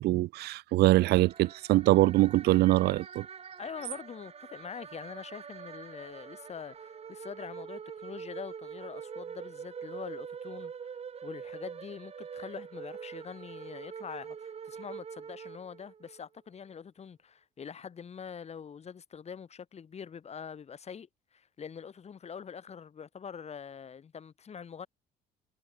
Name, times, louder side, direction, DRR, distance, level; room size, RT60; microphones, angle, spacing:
voice 1, 0.0-3.3, right 17 dB, 75° right, 0.7 m, -23 dB
sound 1, 0.9-16.2, right 7 dB, 35° right, 2.9 m, -44 dB
voice 2, 3.6-24.9, left 7 dB, 40° left, 7.2 m, -44 dB
cardioid pair, 110°, 17 cm